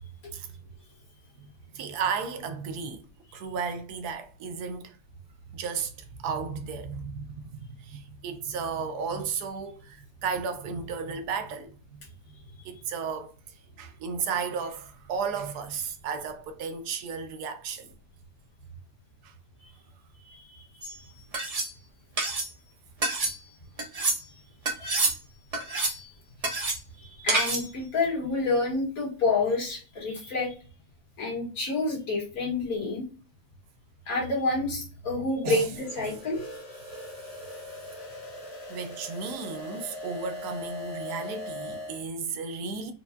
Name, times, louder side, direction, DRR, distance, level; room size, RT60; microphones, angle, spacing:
voice 1, 1.7-3.1 3.3-5.0 5.5-12.4 12.6-17.9 19.2-19.3 35.4-35.7 36.0-36.1 38.7-42.9, right 5 dB, 75° right, 1.1 m, -34 dB
voice 2, 20.2-20.6 24.8-24.9 27.0-30.5 31.2-33.0 34.1-36.4, left 3 dB, 60° left, 1.8 m, -28 dB
sound 1, 20.8-21.0 21.3-21.7 22.2-22.5 23.0-23.4 23.8-24.2 24.7-25.2 25.5-26.0 26.4-26.8 27.3-27.7, right 3 dB, 60° right, 0.4 m, -27 dB
sound 2, 35.8-42.0, left 1 dB, 30° left, 0.8 m, -40 dB
4.4 x 2.3 x 2.5 m
omnidirectional pair, 1.7 m